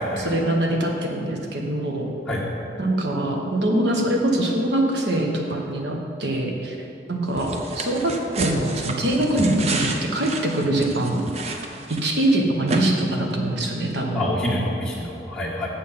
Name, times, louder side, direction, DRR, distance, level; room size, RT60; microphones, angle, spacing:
voice 1, 0.2-2.1 2.8-6.8 7.1-11.2 11.9-14.3, right 1 dB, 85° right, 1 dB, 1.2 m, -23 dB
sound 1, 7.4-12.3 12.7-12.8, right 3 dB, 35° right, 0.6 m, -30 dB
voice 2, 14.1-15.7, left 1 dB, 5° left, -8 dB, 1.4 m, -26 dB
7.3 x 6.9 x 5.6 m, 2.6 s
head